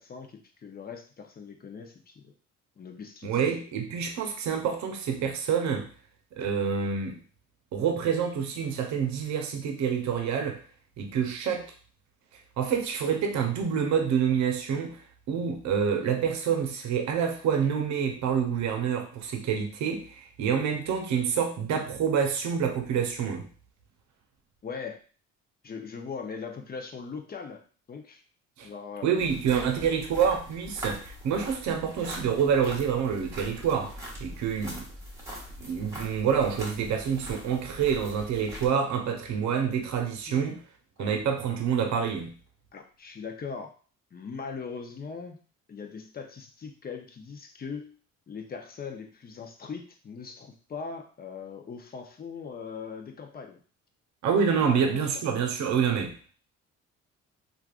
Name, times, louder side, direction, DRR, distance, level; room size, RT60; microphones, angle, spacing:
voice 1, 0.0-2.3 2.8-3.6 24.6-25.0 25.6-28.2 28.6-29.1 40.3-40.5 41.0-41.2 42.7-43.7 44.1-45.4 45.7-47.9 48.3-53.6 54.5-55.3, left 5 dB, 30° left, 4 dB, 0.6 m, -40 dB
voice 2, 3.2-5.9 6.3-7.2 7.7-10.6 11.0-11.7 12.6-15.0 15.3-23.5 28.6-28.7 29.0-34.0 34.2-34.9 35.6-40.6 41.0-42.3 54.2-56.4, right 7 dB, 65° right, 4 dB, 0.7 m, -27 dB
sound 1, 29.2-38.7, equal, 10° right, 1.0 m, -42 dB
3.3 x 2.4 x 2.4 m, 0.39 s
supercardioid pair, 80°, 30 cm